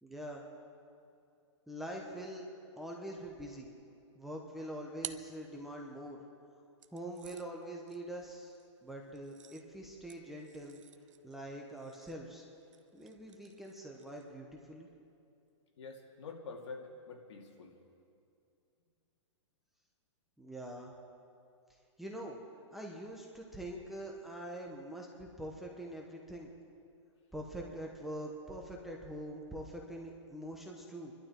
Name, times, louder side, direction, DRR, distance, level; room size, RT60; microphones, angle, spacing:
voice 1, 0.0-0.4 1.7-2.4 2.8-3.7 4.1-6.2 6.9-10.8 11.2-12.4 12.9-14.9 20.4-20.9 22.0-22.4 22.7-26.5 27.3-31.1, right 1 dB, ahead, -1 dB, 0.8 m, -44 dB
sound 1, 4.4-6.1 6.8-14.4, right 9 dB, 85° right, 0.8 m, -53 dB
voice 2, 15.8-17.8, left 4 dB, 65° left, 1 dB, 2.5 m, -47 dB
27.0 x 12.0 x 4.4 m, 2.5 s
hypercardioid pair, 170°, 16 cm